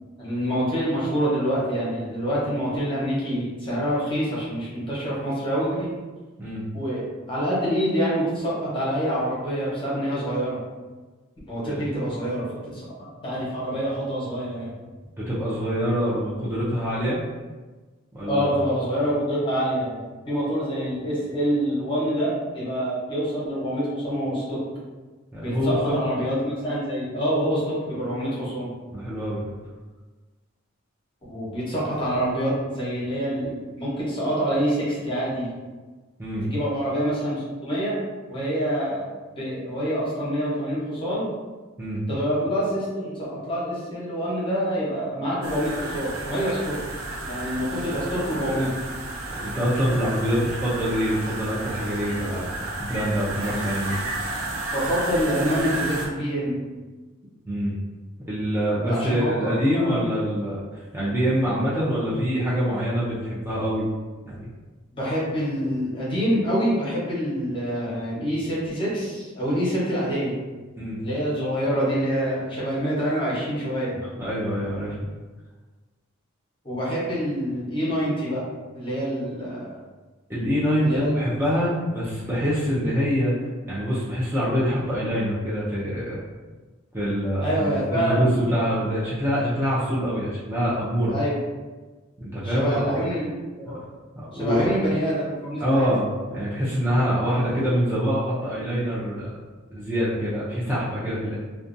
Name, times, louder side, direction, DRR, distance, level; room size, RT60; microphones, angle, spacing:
voice 1, 0.2-5.9 6.7-10.6 11.5-14.7 18.3-24.6 25.4-28.7 31.3-35.5 36.4-38.0 38.3-39.1 39.4-41.3 42.1-46.8 47.3-48.7 54.7-56.6 58.8-59.9 64.9-70.3 71.0-74.0 76.6-78.4 78.7-79.7 80.8-81.1 87.4-88.4 91.1-91.4 92.4-93.3 93.6-93.8 94.3-95.9, equal, 25° left, -7 dB, 0.8 m, -26 dB
voice 2, 15.2-17.2 18.1-18.6 25.3-25.9 28.9-29.5 36.2-36.5 41.8-42.0 49.3-53.9 57.5-57.8 58.3-63.9 64.2-64.4 70.8-71.1 74.2-75.0 80.3-83.3 83.7-86.2 86.9-91.1 92.2-93.1 94.1-94.8 95.6-99.3 99.7-101.4, equal, 10° right, -9 dB, 0.4 m, -25 dB
sound 1, 45.4-56.1, right 2 dB, 80° right, 0.5 m, -32 dB
2.6 x 2.2 x 2.5 m, 1.3 s
head